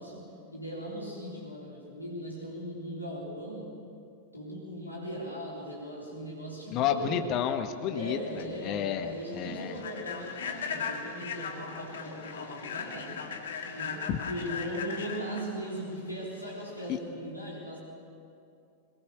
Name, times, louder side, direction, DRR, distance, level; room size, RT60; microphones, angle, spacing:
voice 1, 0.0-3.8 4.3-7.3 7.9-13.2 13.7-17.8, equal, 85° left, -4 dB, 3.7 m, -39 dB
voice 2, 6.7-9.7 14.1-14.2 16.9-17.0, left 9 dB, 40° left, 7 dB, 1.5 m, -31 dB
Human voice / Train, 8.1-17.0, left 6 dB, 60° left, 2.1 m, -39 dB
22.0 x 21.5 x 7.0 m, 2.5 s
figure-of-eight pair, 90°, 0 cm